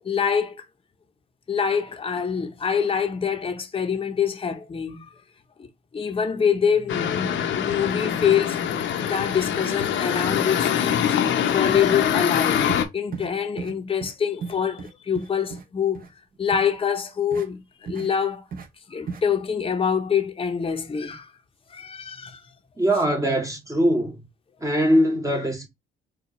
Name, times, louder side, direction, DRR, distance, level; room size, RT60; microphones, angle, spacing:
voice 1, 0.0-0.7 1.5-5.1 5.6-5.7 5.9-11.1 11.5-12.6 12.9-16.0 16.4-18.4 18.9-21.3 21.7-22.4, left 7 dB, 30° left, 0.7 m, -25 dB
sound 1, 6.9-12.8, left 9 dB, 70° left, 0.7 m, -24 dB
sound 2, 10.5-10.6 10.9-11.1 11.4-11.6 11.9-12.1 12.7-12.8 13.1-13.3 13.6-13.7 14.0-14.1 14.4-15.6 15.9-16.1 16.5-16.7 17.3-17.5 17.8-18.1 18.5-18.7 19.1-19.2, right 5 dB, 45° right, 0.9 m, -35 dB
voice 2, 22.8-24.2 24.6-25.7, equal, 15° right, 0.9 m, -21 dB
4.3 x 2.3 x 2.9 m
cardioid pair, 90°, 20 cm